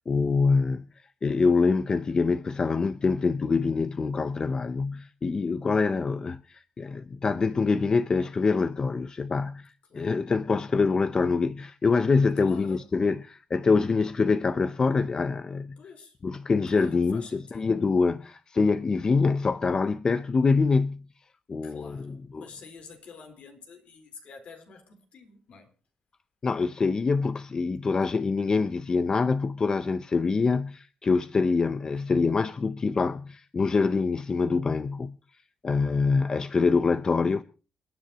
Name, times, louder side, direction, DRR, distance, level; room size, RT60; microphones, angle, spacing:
voice 1, 0.1-15.8 16.2-21.1 21.5-22.5 26.4-35.2 35.6-37.4, left 4 dB, 35° left, 0.6 m, -25 dB
voice 2, 12.4-13.1 15.8-16.2 16.7-17.7 21.6-25.7, left 4 dB, 65° left, 3.9 m, -48 dB
28.5 x 10.0 x 2.9 m
cardioid pair, 105°, 2 cm